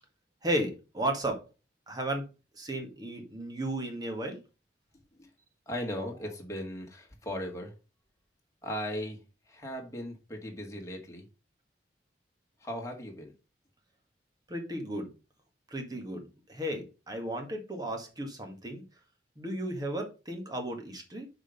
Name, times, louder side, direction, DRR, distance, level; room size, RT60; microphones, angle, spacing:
voice 1, 0.4-1.4 1.9-2.3 2.5-4.4 14.5-15.1 15.7-16.2 16.5-18.8 19.4-21.3, right 1 dB, 20° right, 3 dB, 1.8 m, -34 dB
voice 2, 5.7-7.7 8.6-9.2 9.5-11.3 12.6-13.3, equal, 15° left, 1 dB, 2.0 m, -37 dB
6.3 x 5.0 x 5.2 m, 0.30 s
head